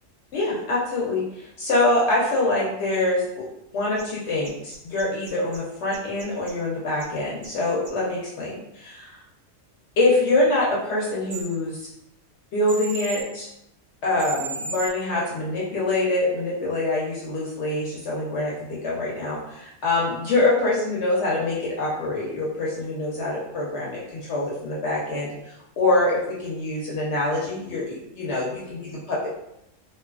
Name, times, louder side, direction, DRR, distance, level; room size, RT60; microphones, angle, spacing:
voice 1, 0.3-3.5 3.7-8.6 8.8-9.2 10.0-11.9 12.5-13.5 14.0-29.3, left 2 dB, 65° left, -5 dB, 0.9 m, -25 dB
sound 1, 4.0-4.1 4.4-5.6 5.9-6.5 7.0-7.1 7.4-7.5 7.8-7.9 11.3-11.4 12.7-13.2 14.2-14.9, right 5 dB, 55° right, 0.8 m, -34 dB
2.6 x 2.3 x 2.3 m, 0.81 s
omnidirectional pair, 1.3 m